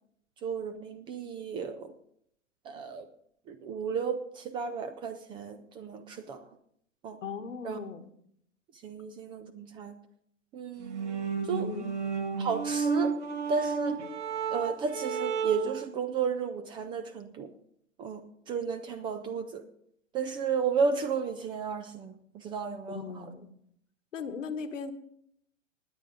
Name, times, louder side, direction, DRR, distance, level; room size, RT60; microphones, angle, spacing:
voice 1, 0.4-1.9 2.7-3.1 3.5-6.4 7.0-7.2 7.6-7.8 8.8-9.9 10.5-11.2 11.4-11.7 12.4-13.1 13.5-14.0 14.5-17.5 18.0-19.6 20.1-23.2, right 5 dB, 15° right, 12 dB, 0.4 m, -33 dB
voice 2, 7.2-8.1 11.6-11.9 22.9-23.5 24.1-24.9, left 5 dB, 75° left, 8 dB, 1.4 m, -38 dB
sound 1, 10.8-15.8, right 5 dB, 60° right, 1.6 m, -32 dB
20.0 x 8.4 x 3.8 m, 0.69 s
figure-of-eight pair, 105°, 38 cm